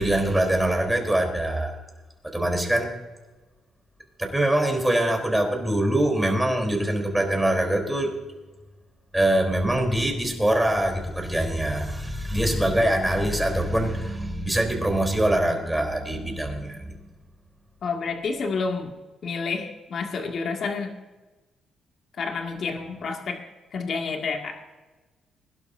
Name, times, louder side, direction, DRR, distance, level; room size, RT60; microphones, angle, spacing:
voice 1, 0.0-1.8 2.2-2.9 4.2-8.2 9.1-17.0, right 1 dB, 5° right, 2 dB, 3.7 m, -23 dB
voice 2, 17.8-18.9 19.2-20.9 22.2-23.4 23.7-24.6, left 4 dB, 60° left, 2 dB, 2.2 m, -29 dB
21.5 x 11.5 x 2.7 m, 1.2 s
cardioid pair, 90°, 0 cm